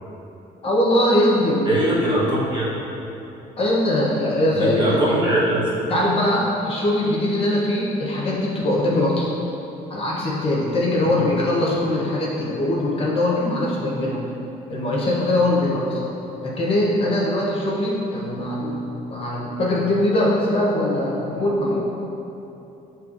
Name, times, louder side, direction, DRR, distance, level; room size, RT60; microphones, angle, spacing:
voice 1, 0.6-1.6 3.6-4.8 5.0-5.1 5.9-9.3 9.9-14.2 14.7-16.0 16.4-21.8, left 1 dB, 35° left, -5 dB, 0.8 m, -21 dB
voice 2, 1.6-2.6 4.6-5.7 11.1-11.2, right 1 dB, 25° right, -7 dB, 1.1 m, -21 dB
6.6 x 2.8 x 2.5 m, 2.9 s
cardioid pair, 110°, 17 cm